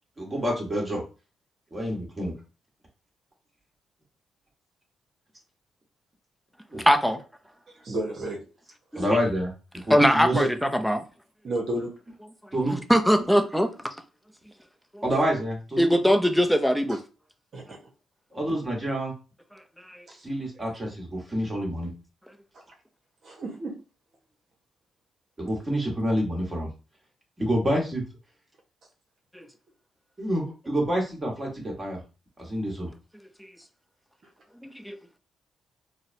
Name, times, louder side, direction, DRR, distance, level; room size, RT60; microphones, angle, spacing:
voice 1, 0.2-1.0 1.7-2.3 6.7-6.9 9.0-10.4 12.5-12.8 15.0-15.9 18.3-19.1 20.2-21.9 25.4-26.7 27.4-28.0 30.2-32.0 32.4-32.9, equal, 30° right, 1.5 m, -28 dB
voice 2, 6.8-7.2 8.9-9.1 9.9-11.0 12.7-13.7 14.9-15.0 15.8-17.0 19.8-20.1 29.3-29.5 33.4-33.5 34.6-35.0, equal, ahead, 0.6 m, -22 dB
voice 3, 7.8-8.4 9.0-9.1 10.3-10.5 11.4-11.9 17.5-17.8 23.2-23.8, right 1 dB, 60° right, 0.9 m, -30 dB
3.8 x 2.1 x 2.6 m
hypercardioid pair, 45°, 0 cm